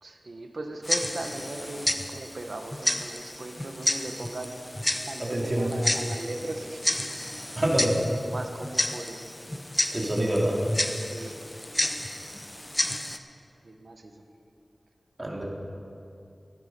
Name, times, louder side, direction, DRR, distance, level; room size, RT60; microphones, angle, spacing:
voice 1, 0.0-4.5 5.0-7.2 8.2-9.2 10.8-11.4 11.8-11.9 13.6-14.1, right 2 dB, 75° right, 5 dB, 1.1 m, -38 dB
Tick-tock, 0.8-13.2, left 1 dB, 20° left, 0.7 m, -31 dB
voice 2, 5.2-5.7 7.6-8.0 9.9-10.6 15.2-15.4, right 1 dB, 35° right, -3 dB, 2.5 m, -26 dB
14.5 x 11.5 x 5.3 m, 2.6 s
wide cardioid pair, 65°, 0 cm